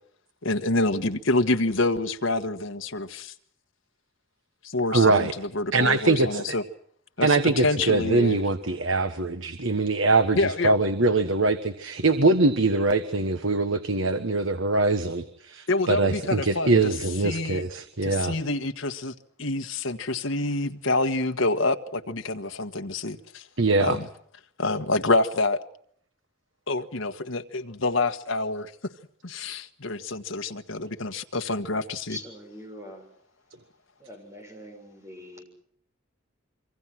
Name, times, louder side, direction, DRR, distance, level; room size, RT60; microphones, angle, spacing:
voice 1, 0.4-3.3 4.6-6.6 7.2-8.4 10.3-10.7 15.7-16.9 17.2-17.6 18.0-23.4 23.8-24.1 24.6-25.6 26.7-28.7 29.2-32.2, left 2 dB, 75° left, 6 dB, 1.5 m, -27 dB
voice 2, 4.9-5.3 5.7-6.6 7.2-18.3 23.6-24.0, right 3 dB, 70° right, 10 dB, 1.4 m, -23 dB
voice 3, 32.1-33.1 34.0-35.4, equal, 15° right, 5 dB, 6.7 m, -43 dB
26.5 x 24.5 x 6.1 m, 0.65 s
head